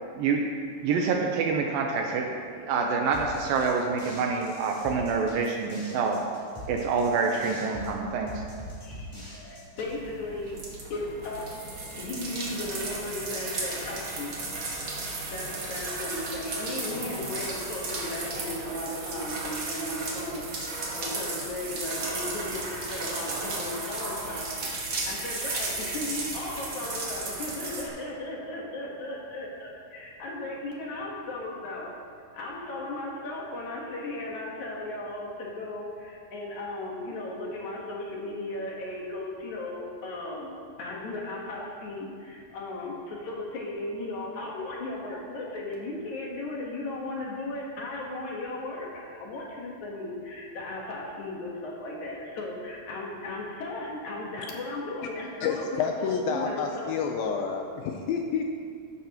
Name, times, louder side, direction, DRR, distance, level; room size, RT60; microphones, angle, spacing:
voice 1, 0.1-0.5 0.8-6.2 6.7-8.4, right 5 dB, 80° right, 2 dB, 2.2 m, -27 dB
sound 1, 3.1-9.9, left 1 dB, 10° left, 2.7 m, -43 dB
voice 2, 8.8-10.6 10.9-14.6 15.3-31.9 32.3-40.5 40.8-57.5, left 2 dB, 60° left, -3 dB, 2.3 m, -36 dB
sound 2, 9.8-27.8, right 2 dB, 45° right, 1.8 m, -34 dB
voice 3, 55.4-58.4, left 6 dB, 80° left, 3 dB, 2.2 m, -29 dB
14.0 x 11.5 x 3.0 m, 2.2 s
omnidirectional pair, 4.6 m